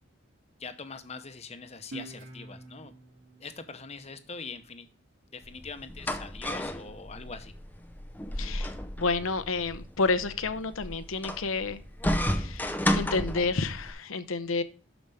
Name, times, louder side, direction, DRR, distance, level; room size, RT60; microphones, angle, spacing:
voice 1, 0.6-2.9 3.4-4.9 5.3-7.5, left 4 dB, 30° left, 9 dB, 0.9 m, -43 dB
Guitar, 1.9-5.1, right 2 dB, 75° right, 1.9 m, -47 dB
sound 1, 5.4-13.9, left 1 dB, 10° left, 0.6 m, -33 dB
voice 2, 8.4-8.7 9.0-11.8 12.2-14.6, left 3 dB, 75° left, 13 dB, 0.8 m, -30 dB
12.5 x 5.1 x 3.4 m, 0.37 s
head